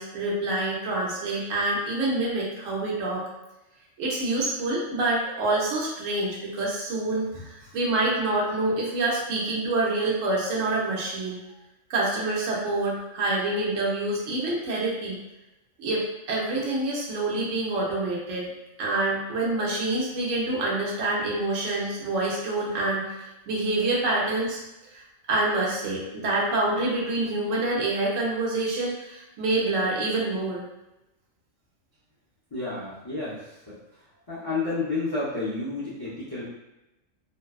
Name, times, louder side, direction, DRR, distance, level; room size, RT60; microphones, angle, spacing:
voice 1, 0.0-3.3 4.0-11.4 11.9-15.2 15.8-18.5 18.8-23.1 23.5-24.6 24.9-25.0 25.3-30.7, right 2 dB, 75° right, -4 dB, 1.0 m, -27 dB
voice 2, 32.5-33.8 34.3-36.5, left 3 dB, 40° left, -9 dB, 0.3 m, -31 dB
2.6 x 2.2 x 2.3 m, 0.96 s
omnidirectional pair, 1.3 m